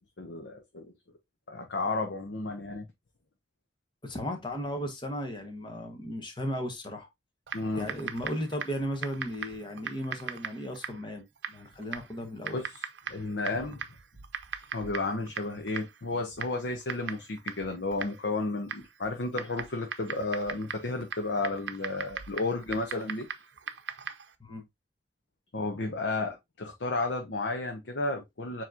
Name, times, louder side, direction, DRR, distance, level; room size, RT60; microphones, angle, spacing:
voice 1, 0.2-0.9 1.5-2.9 7.5-7.9 12.5-13.8 14.7-23.3 25.5-28.6, left 2 dB, 80° left, 0.8 m, -32 dB
voice 2, 4.0-7.1 7.7-12.6 24.4-24.6, equal, 25° left, 1.1 m, -35 dB
Typing, 7.5-24.3, right 7 dB, 75° right, 0.6 m, -41 dB
7.2 x 3.0 x 2.4 m
head